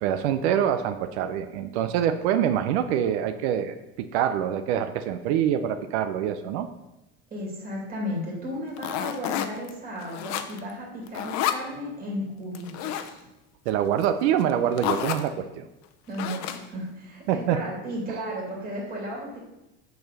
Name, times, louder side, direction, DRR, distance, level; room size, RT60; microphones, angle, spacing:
voice 1, 0.0-6.7 13.7-15.7 17.3-17.6, right 9 dB, 90° right, 9 dB, 0.6 m, -25 dB
voice 2, 7.3-13.2 16.1-19.4, equal, 25° right, -3 dB, 2.7 m, -34 dB
sound 1, 8.8-9.7 10.0-10.7 11.1-11.7 12.5-13.1 14.0-14.1 14.4-14.5 14.8-15.3 16.1-16.8, left 10 dB, 55° left, 0.7 m, -30 dB
6.8 x 4.2 x 6.6 m, 0.95 s
cardioid pair, 135°, 32 cm